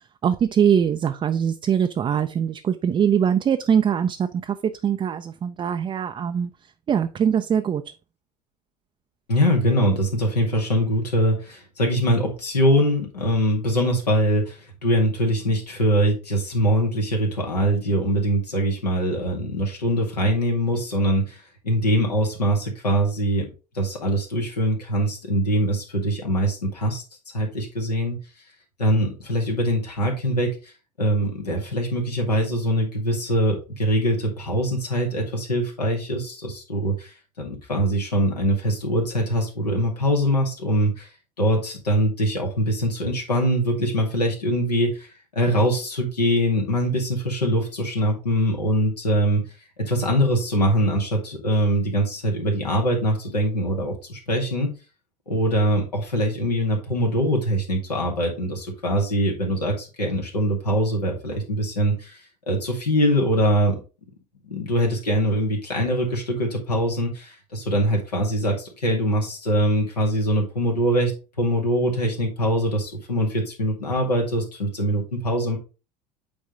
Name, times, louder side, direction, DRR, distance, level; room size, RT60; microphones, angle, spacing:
voice 1, 0.2-4.6 4.8-6.5 6.9-7.8, right 8 dB, 25° right, 0.5 m, -22 dB
voice 2, 9.3-23.5 23.7-27.0 27.3-28.2 28.8-30.7 31.0-41.1 41.4-49.5 49.8-54.7 55.3-62.2 62.5-63.8 64.4-71.1 71.4-75.6, equal, 90° left, 2.2 m, -23 dB
8.7 x 3.6 x 3.8 m
hypercardioid pair, 75°, 20 cm